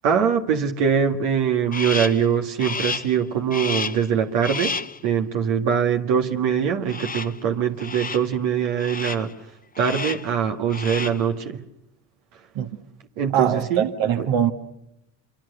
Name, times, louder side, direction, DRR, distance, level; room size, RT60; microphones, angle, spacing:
voice 1, 0.0-4.7 5.0-9.3 9.8-11.6 13.2-13.9 14.2-14.3, right 7 dB, 85° right, 2.0 m, -22 dB
Crow, 1.7-2.3 2.6-3.2 3.5-4.1 4.4-5.0 6.9-7.4 7.8-8.3 8.8-9.3 9.7-10.3 10.6-11.3, left 4 dB, 20° left, 0.9 m, -31 dB
voice 2, 13.3-14.5, right 9 dB, 70° right, 1.8 m, -22 dB
27.5 x 24.5 x 6.8 m
supercardioid pair, 70°, 47 cm